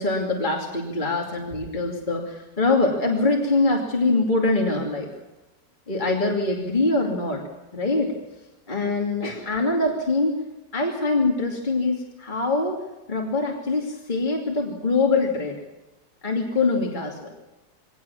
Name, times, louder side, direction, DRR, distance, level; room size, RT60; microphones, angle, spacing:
voice 1, 0.0-5.1 5.9-7.4 7.7-8.1 8.7-10.4 10.7-12.8 13.1-15.6 16.2-17.3, left 3 dB, 30° left, 0 dB, 2.8 m, -23 dB
22.5 x 18.0 x 7.2 m, 1.0 s
omnidirectional pair, 1.7 m